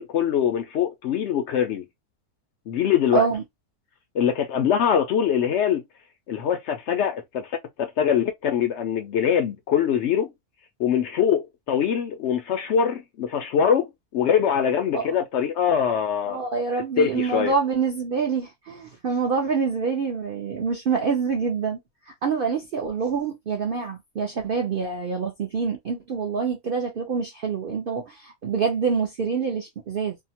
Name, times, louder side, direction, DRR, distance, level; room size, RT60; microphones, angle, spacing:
voice 1, 0.0-1.8 2.7-3.3 4.1-5.8 6.3-7.5 7.8-10.3 10.8-16.4 17.0-17.5, left 8 dB, 70° left, 0.6 m, -23 dB
voice 2, 3.1-3.4 14.9-15.1 16.3-21.8 22.1-30.2, right 5 dB, 55° right, 0.6 m, -26 dB
2.8 x 2.1 x 2.8 m
omnidirectional pair, 1.6 m